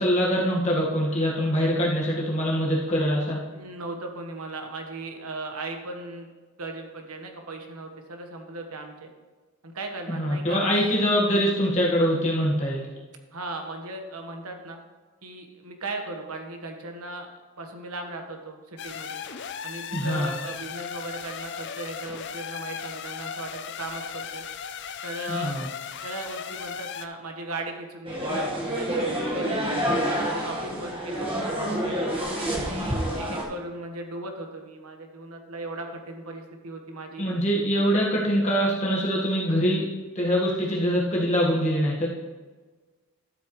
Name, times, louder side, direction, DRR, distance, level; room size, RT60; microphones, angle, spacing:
voice 1, 0.0-3.4 10.2-12.9 19.9-20.3 25.3-25.7 37.2-39.9 40.1-42.1, equal, 30° left, -3 dB, 1.5 m, -24 dB
voice 2, 3.5-6.3 6.6-9.1 9.6-10.7 13.3-14.8 15.2-17.3 17.6-19.2 19.6-24.4 25.0-25.5 26.0-29.7 30.2-32.0 32.6-37.2, right 2 dB, 85° right, 4 dB, 1.4 m, -37 dB
sound 1, 18.8-27.1, left 7 dB, 50° left, 0.5 m, -37 dB
sound 2, 28.1-33.4, equal, 25° right, 1.4 m, -28 dB
12.5 x 8.1 x 3.2 m, 1.3 s
head